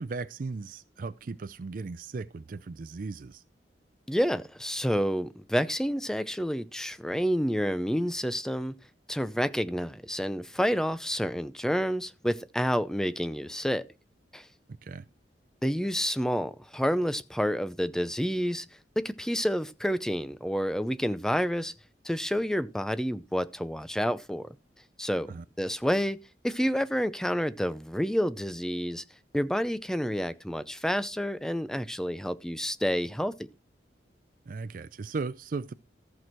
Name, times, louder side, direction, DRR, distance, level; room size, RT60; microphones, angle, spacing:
voice 1, 0.0-3.4 14.8-15.1 25.3-25.4 34.5-35.7, right 4 dB, 50° right, 0.4 m, -37 dB
voice 2, 4.1-8.8 9.1-13.9 14.3-14.5 15.6-18.7 19.0-21.7 22.0-24.5 25.0-29.0 29.3-33.3, equal, 5° left, 0.5 m, -29 dB
14.0 x 6.2 x 4.5 m
head